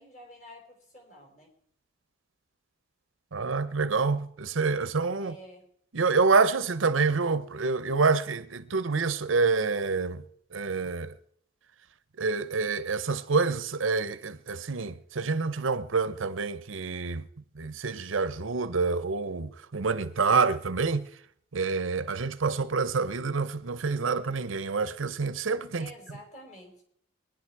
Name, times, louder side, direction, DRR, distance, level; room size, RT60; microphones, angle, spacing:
voice 1, 0.0-1.5 5.2-5.6 25.8-26.8, equal, 40° left, 4.4 m, -49 dB
voice 2, 3.3-5.3 5.9-10.2 10.5-11.1 12.2-17.3 17.6-21.0 21.5-25.9, right 4 dB, 80° right, 0.8 m, -27 dB
22.0 x 10.5 x 4.7 m
head